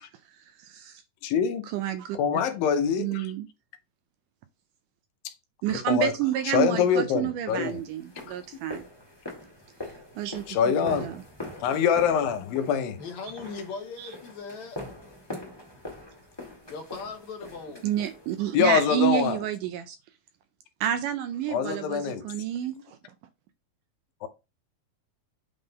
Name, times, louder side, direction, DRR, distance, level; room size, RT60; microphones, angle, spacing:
voice 1, 0.6-1.0 1.6-2.2 3.0-3.5 5.6-8.9 10.2-10.4 10.8-11.2 14.0-14.1 17.8-20.0 20.8-23.0, right 11 dB, 80° right, 2.0 m, -29 dB
voice 2, 1.2-1.7 2.1-3.3 5.7-6.1 6.5-7.8 10.5-11.1 11.6-13.0 18.5-19.4 21.5-22.3 24.2-24.3, left 7 dB, 80° left, 2.6 m, -24 dB
sound 1, 7.6-18.7, left 1 dB, 15° left, 1.1 m, -43 dB
voice 3, 13.0-14.8 16.7-17.9, left 4 dB, 65° left, 2.0 m, -39 dB
8.7 x 3.7 x 4.0 m
omnidirectional pair, 4.1 m